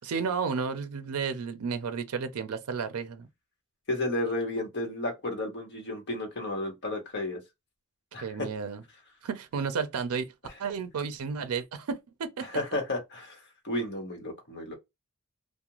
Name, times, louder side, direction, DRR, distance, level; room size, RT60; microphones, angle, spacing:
voice 1, 0.1-3.3 8.2-8.8 9.2-10.3 10.6-12.5, right 5 dB, 80° right, 0.4 m, -32 dB
voice 2, 3.9-7.4 8.1-8.5 12.4-14.7, left 1 dB, 50° left, 1.0 m, -32 dB
2.4 x 2.1 x 2.9 m
head